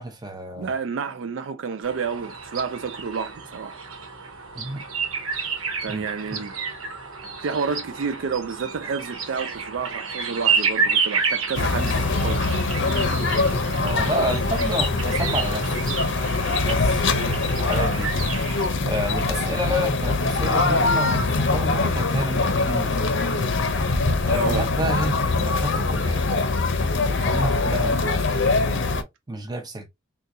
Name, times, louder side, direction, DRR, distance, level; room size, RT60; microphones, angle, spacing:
voice 1, 0.0-0.7 4.5-4.8 5.9-6.4 13.8-15.8 16.6-18.1 18.8-23.2 24.2-26.3 27.2-28.4 29.3-29.9, right 1 dB, 20° right, 0.7 m, -30 dB
voice 2, 0.6-3.8 5.8-6.5 7.4-12.5 24.3-24.7, right 5 dB, 65° right, 0.4 m, -30 dB
sound 1, 1.8-18.7, right 5 dB, 85° right, 1.1 m, -30 dB
sound 2, 11.5-29.0, left 3 dB, 60° left, 0.6 m, -23 dB
3.9 x 2.3 x 2.7 m
head